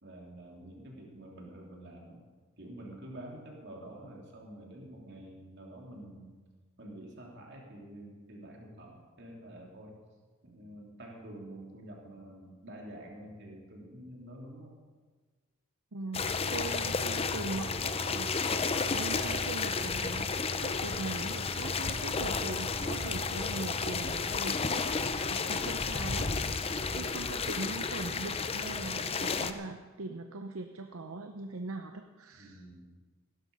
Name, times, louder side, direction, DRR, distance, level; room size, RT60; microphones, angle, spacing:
voice 1, 0.0-2.3 2.6-6.4 6.8-10.0 10.4-14.8 26.7-27.2 32.4-32.9, right 1 dB, 50° right, -1 dB, 3.1 m, -48 dB
voice 2, 15.9-26.3 26.6-32.6, right 3 dB, 70° right, 6 dB, 0.8 m, -41 dB
sound 1, 16.1-29.5, left 4 dB, 25° left, 0.6 m, -32 dB
16.0 x 12.0 x 5.4 m, 1.4 s
head